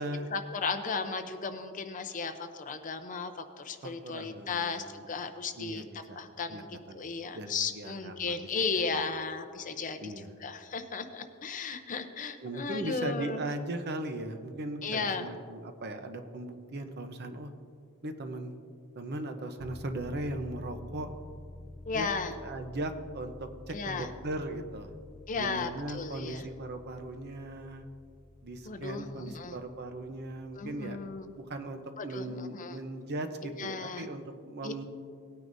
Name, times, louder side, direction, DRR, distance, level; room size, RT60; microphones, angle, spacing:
voice 1, 0.3-3.3 3.6-5.8 6.2-10.1 10.4-13.4 14.8-15.3 21.9-22.3 23.7-24.1 25.3-26.5 28.7-29.5 30.5-31.3 32.0-32.8 33.4-34.1 34.6-34.7, left 4 dB, 40° left, 7 dB, 0.6 m, -35 dB
voice 2, 3.8-5.0 5.5-6.2 6.5-7.1 7.4-9.0 10.0-10.4 12.4-17.5 18.0-18.6 19.0-21.1 21.9-22.1 22.4-24.9 25.3-27.9 28.4-31.0 31.2-34.8, right 1 dB, 50° right, 7 dB, 0.8 m, -38 dB
sound 1, 19.6-31.5, left 1 dB, 10° left, 1.3 m, -50 dB
18.5 x 9.5 x 2.6 m, 2.3 s
head